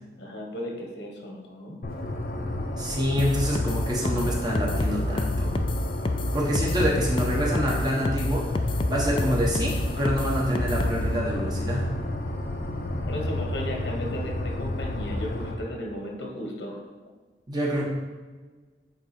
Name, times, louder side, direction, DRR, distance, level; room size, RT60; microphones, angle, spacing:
voice 1, 0.2-1.8 13.1-16.8, left 1 dB, 90° left, 0 dB, 1.3 m, -35 dB
sound 1, 1.8-15.5, left 1 dB, 55° left, 0.7 m, -31 dB
voice 2, 2.8-5.6 6.3-8.5 8.9-11.9 17.5-17.8, equal, 25° right, -3 dB, 1.2 m, -27 dB
sound 2, 3.2-11.1, left 2 dB, 30° left, 0.4 m, -28 dB
8.9 x 3.7 x 4.4 m, 1.3 s
head